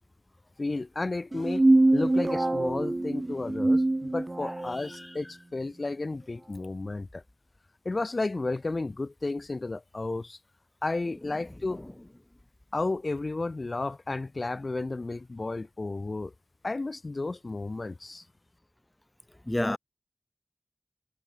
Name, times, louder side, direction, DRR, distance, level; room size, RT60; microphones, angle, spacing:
voice 1, 0.6-1.6 1.9-7.2 7.8-10.4 10.8-11.8 12.7-16.3 16.6-18.2, left 3 dB, 70° left, 3.0 m, -32 dB
sound 1, 1.3-4.7, right 2 dB, 45° right, 0.4 m, -24 dB
voice 2, 4.4-5.1 11.7-11.8 19.5-19.8, left 1 dB, 25° left, 1.6 m, -32 dB
wide cardioid pair, 40°, 0 cm